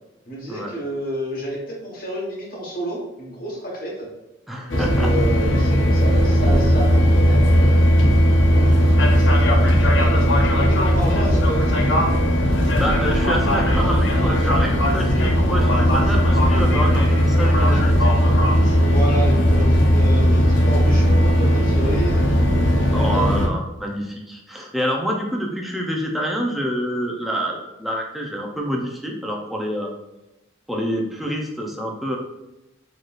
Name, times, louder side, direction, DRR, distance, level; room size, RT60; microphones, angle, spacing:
voice 1, 0.3-4.1 4.7-8.1 9.3-10.2 10.5-12.2 18.8-22.3 22.9-23.3, equal, 50° left, -3 dB, 1.3 m, -30 dB
voice 2, 4.5-5.1 12.6-18.0 22.9-29.9 30.7-32.2, equal, ahead, -1 dB, 0.6 m, -27 dB
sound 1, 4.7-23.5, equal, 80° left, 0.7 m, -17 dB
4.1 x 3.2 x 2.5 m, 0.93 s
head